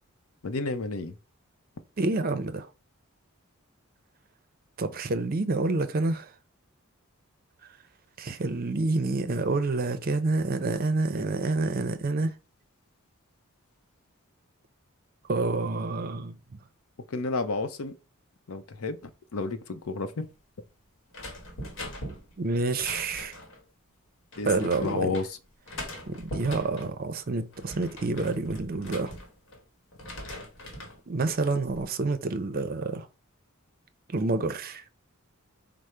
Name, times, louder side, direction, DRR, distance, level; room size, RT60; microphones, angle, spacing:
voice 1, 0.4-1.1 17.1-17.9 18.5-19.0 19.3-20.3 24.4-24.5 24.8-25.3, left 3 dB, 75° left, 0.6 m, -30 dB
voice 2, 2.0-2.7 4.8-6.3 8.2-12.3 15.3-16.3 22.4-23.4 24.4-25.1 26.1-29.1 31.1-33.1 34.1-34.8, right 3 dB, 45° right, 0.5 m, -28 dB
sound 1, 21.1-23.6 24.3-25.3 25.7-26.9 27.4-29.6 29.9-31.0 31.4-31.9, left 1 dB, 60° left, 1.2 m, -41 dB
4.9 x 2.0 x 4.3 m
head